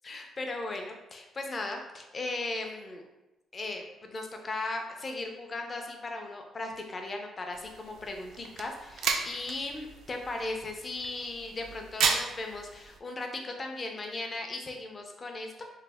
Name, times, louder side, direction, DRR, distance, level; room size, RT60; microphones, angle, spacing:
voice 1, 0.0-3.0 3.5-15.6, left 2 dB, 35° left, 3 dB, 0.5 m, -37 dB
sound 1, 7.5-13.0, right 5 dB, 75° right, 0.3 m, -34 dB
3.1 x 2.1 x 3.4 m, 1.0 s
cardioid pair, 90°, 0 cm